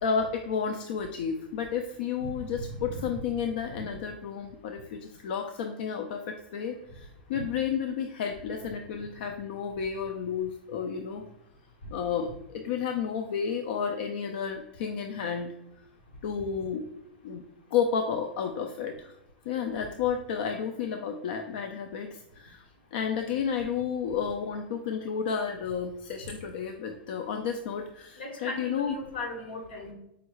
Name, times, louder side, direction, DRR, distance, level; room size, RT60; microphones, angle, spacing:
voice 1, 0.0-11.2 11.9-15.5 16.2-16.9 17.2-17.4 17.7-19.1 19.5-22.6 22.9-29.0, left 7 dB, 70° left, 5 dB, 0.3 m, -31 dB
voice 2, 28.2-29.9, left 2 dB, 90° left, 2 dB, 1.0 m, -38 dB
4.7 x 2.2 x 3.0 m, 0.86 s
hypercardioid pair, 120°, 5 cm